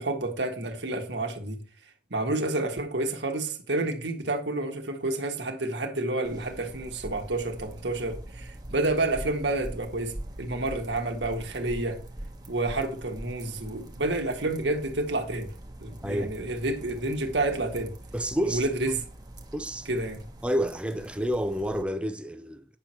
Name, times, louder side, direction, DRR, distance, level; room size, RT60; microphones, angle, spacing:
voice 1, 0.0-1.6 2.1-12.0 12.5-15.5 15.8-17.9 18.4-19.0 19.8-20.2, right 2 dB, 70° right, 1.5 m, -29 dB
sound 1, 6.2-21.8, right 1 dB, 20° right, 1.2 m, -43 dB
voice 2, 16.0-16.4 18.1-18.7 19.5-19.9 20.4-22.6, equal, 5° right, 0.5 m, -29 dB
8.9 x 5.9 x 4.3 m
head